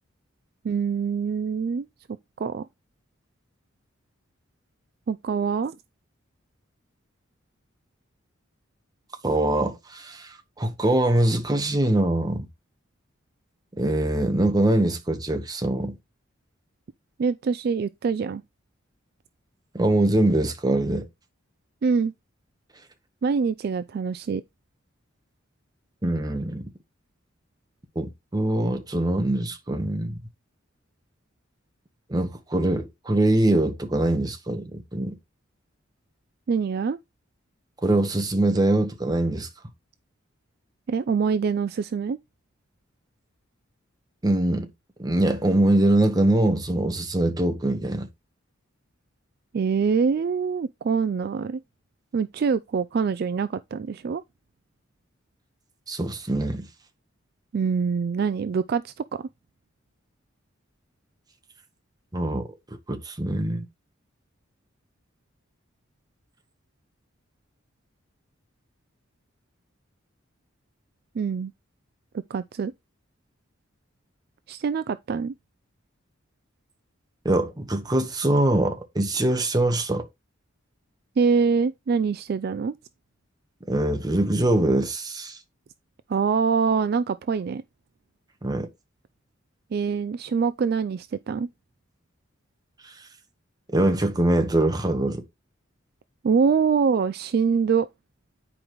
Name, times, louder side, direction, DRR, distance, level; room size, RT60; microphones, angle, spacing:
voice 1, 0.6-1.9 2.4-2.7 5.1-5.8 17.2-18.4 21.8-22.1 23.2-24.4 36.5-37.0 40.9-42.2 49.5-51.6 52.1-54.2 57.5-59.3 71.1-71.5 72.3-72.7 74.5-75.3 81.2-82.7 86.1-87.6 89.7-91.5 96.2-97.9, right 5 dB, 50° right, 0.3 m, -24 dB
voice 2, 9.2-12.5 13.7-16.0 19.7-21.0 26.0-26.7 27.9-30.2 32.1-35.2 37.8-39.5 44.2-44.7 45.0-48.1 55.9-56.7 62.1-62.5 62.9-63.6 77.2-80.1 83.7-85.4 88.4-88.7 92.8-92.9 93.7-95.2, right 1 dB, 20° right, 1.1 m, -23 dB
9.7 x 5.0 x 3.0 m
head